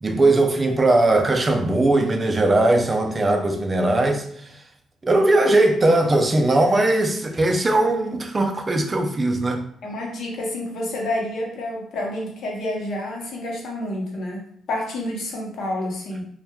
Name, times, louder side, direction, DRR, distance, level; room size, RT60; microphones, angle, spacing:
voice 1, 0.0-4.2 5.0-9.6, right 2 dB, 30° right, 0.4 m, -19 dB
voice 2, 9.8-14.4 14.7-16.2, left 1 dB, 70° left, 0.7 m, -29 dB
2.9 x 2.1 x 2.2 m
cardioid pair, 90°, 0 cm